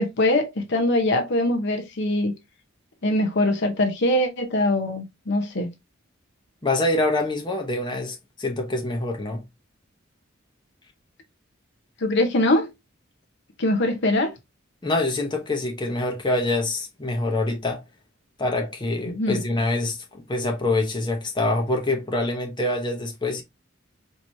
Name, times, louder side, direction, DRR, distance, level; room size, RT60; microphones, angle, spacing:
voice 1, 0.0-2.3 3.0-5.7 12.0-12.7 13.6-14.3 19.1-19.4, left 1 dB, 60° left, 0.8 m, -22 dB
voice 2, 6.6-9.4 14.8-17.8 18.4-23.4, left 2 dB, 20° left, 0.9 m, -25 dB
4.6 x 2.9 x 2.7 m
head